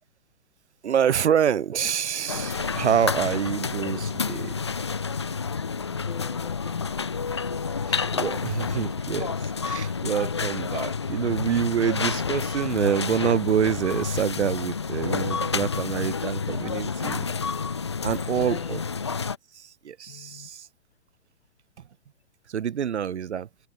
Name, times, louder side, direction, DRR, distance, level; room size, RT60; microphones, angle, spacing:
voice 1, 0.8-4.5 7.9-9.3 9.6-17.3 18.0-18.8 19.5-20.7 22.5-23.5, right 8 dB, 60° right, 1.4 m, -26 dB
sound 1, 2.3-19.4, left 5 dB, 20° left, 0.5 m, -29 dB
voice 2, 5.8-7.2 18.2-18.8 20.1-20.5, left 8 dB, 50° left, 5.5 m, -42 dB
hypercardioid pair, 175°, 38 cm